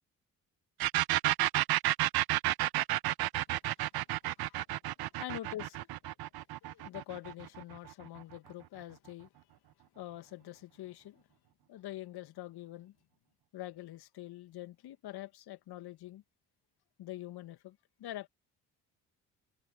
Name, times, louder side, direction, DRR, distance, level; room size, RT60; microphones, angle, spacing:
sound 1, 0.8-8.3, right 15 dB, 55° right, 0.9 m, -31 dB
voice 1, 5.2-5.9 6.6-9.3 10.0-11.2 11.7-12.9 13.5-16.2 17.0-18.3, left 14 dB, 60° left, 2.2 m, -45 dB
hypercardioid pair, 45°, 43 cm